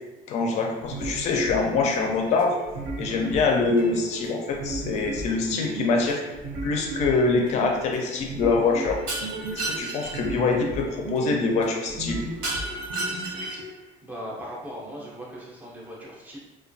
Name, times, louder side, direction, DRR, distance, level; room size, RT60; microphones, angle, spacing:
voice 1, 0.3-2.5 3.0-6.2 6.6-9.0 9.5-12.3, left 4 dB, 45° left, 1 dB, 0.4 m, -24 dB
sound 1, 0.8-13.7, right 2 dB, 50° right, 0.6 m, -35 dB
Shatter, 9.1-10.2 12.4-13.7, right 2 dB, 90° right, 1.0 m, -31 dB
voice 2, 14.0-16.4, equal, 10° right, -5 dB, 0.5 m, -38 dB
2.9 x 2.2 x 2.6 m, 1.1 s
cardioid pair, 170°, 16 cm